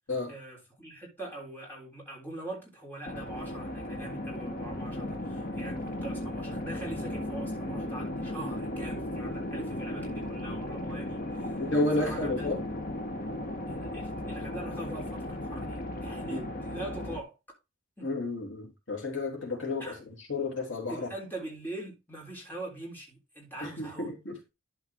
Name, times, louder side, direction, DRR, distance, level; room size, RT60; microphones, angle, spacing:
voice 1, 0.3-11.6 12.0-12.5 13.7-17.4 18.0-18.1 19.8-20.0 20.9-24.1, right 1 dB, 10° left, 3.6 m, -43 dB
sound 1, 3.0-17.2, left 1 dB, 40° left, 1.3 m, -36 dB
voice 2, 11.6-12.6 16.3-16.5 18.0-20.0 20.3-21.1 23.6-24.5, left 2 dB, 60° left, 3.1 m, -31 dB
12.0 x 4.7 x 3.7 m
head